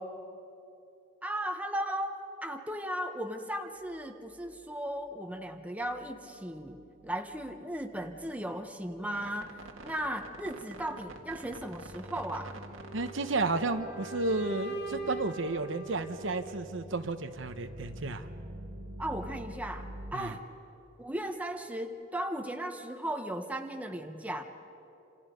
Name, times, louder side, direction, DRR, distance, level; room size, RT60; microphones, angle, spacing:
voice 1, 1.2-6.8 7.0-9.5 9.8-12.6 19.0-20.4 21.0-24.4, right 1 dB, 5° right, 5 dB, 1.2 m, -36 dB
sound 1, 3.9-4.0 4.3-4.7 5.0-20.1, right 1 dB, 90° right, 1.9 m, -48 dB
sound 2, 12.7-16.8, right 3 dB, 55° left, 2.6 m, -42 dB
voice 2, 12.9-18.3 20.1-20.3, right 3 dB, 70° right, 8 dB, 1.0 m, -32 dB
28.0 x 27.5 x 5.3 m, 2.9 s
head